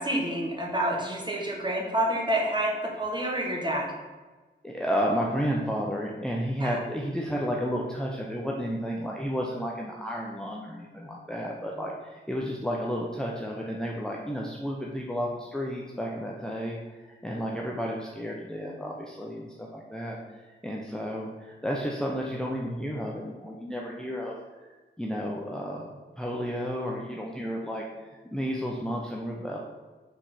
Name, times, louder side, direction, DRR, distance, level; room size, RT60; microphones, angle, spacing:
voice 1, 0.0-3.9 6.6-6.8, right 1 dB, 25° right, -2 dB, 1.7 m, -28 dB
voice 2, 4.6-20.2 20.6-24.4 25.0-29.6, equal, 5° left, -2 dB, 0.9 m, -32 dB
5.2 x 4.2 x 5.8 m, 1.3 s
wide cardioid pair, 60°, 20 cm